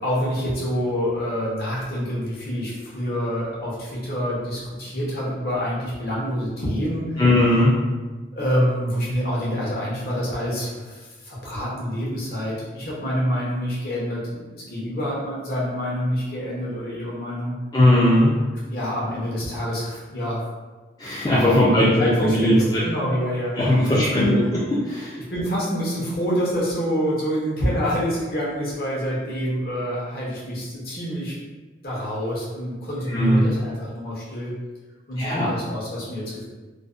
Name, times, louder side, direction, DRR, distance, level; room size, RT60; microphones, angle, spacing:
voice 1, 0.0-7.2 8.3-17.6 18.7-20.4 21.6-23.5 23.9-24.3 25.1-31.4 31.8-34.5 35.1-36.4, equal, 55° left, -6 dB, 0.7 m, -27 dB
voice 2, 7.2-7.8 17.7-18.3 21.0-22.8 23.6-24.4 24.8-25.2 33.1-33.5 35.2-35.5, left 1 dB, 20° left, -8 dB, 0.3 m, -18 dB
2.5 x 2.1 x 2.4 m, 1.3 s
head